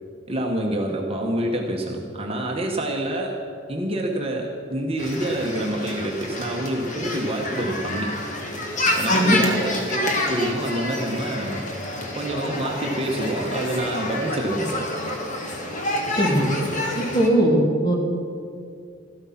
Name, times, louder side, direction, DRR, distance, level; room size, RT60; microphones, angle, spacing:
voice 1, 0.3-3.4 3.7-8.2 8.9-11.6 12.1-14.9, right 1 dB, 30° right, 0 dB, 1.3 m, -27 dB
sound 1, 5.0-17.3, left 1 dB, 40° left, 1.7 m, -28 dB
voice 2, 16.1-16.5 16.9-17.9, right 1 dB, 20° left, -1 dB, 2.4 m, -19 dB
14.0 x 12.5 x 5.9 m, 2.3 s
head